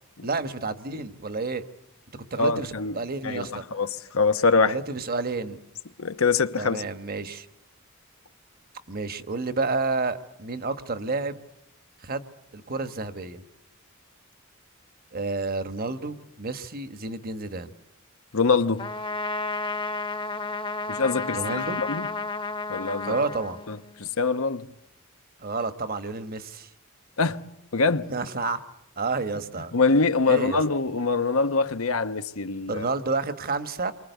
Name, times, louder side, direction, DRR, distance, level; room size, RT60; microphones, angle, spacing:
voice 1, 0.2-1.6 2.3-3.6 4.7-5.6 6.6-7.5 8.9-11.4 12.0-12.2 12.5-13.4 15.1-17.7 21.3-21.8 23.1-23.6 25.4-26.7 28.1-28.6 29.0-29.7 30.2-30.6 32.7-33.9, right 3 dB, 45° right, 1.3 m, -30 dB
voice 2, 2.4-2.9 3.2-4.8 6.0-6.8 18.3-18.8 20.9-22.1 22.7-23.2 23.7-24.7 27.2-27.4 27.7-28.1 29.7-32.8, left 4 dB, 90° left, 1.1 m, -24 dB
Trumpet, 18.8-24.1, left 3 dB, 25° left, 1.1 m, -32 dB
29.5 x 24.0 x 8.2 m
head